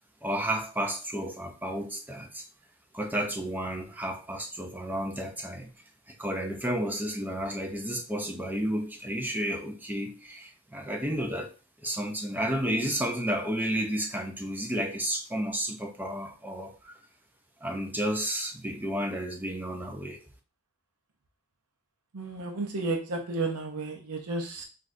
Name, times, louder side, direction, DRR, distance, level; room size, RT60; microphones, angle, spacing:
voice 1, 0.2-2.5 2.9-5.7 6.1-11.5 11.8-17.0 17.6-20.2, right 1 dB, 10° right, 0.5 m, -32 dB
voice 2, 22.1-24.6, right 3 dB, 85° right, 0.7 m, -32 dB
6.0 x 2.5 x 2.5 m
head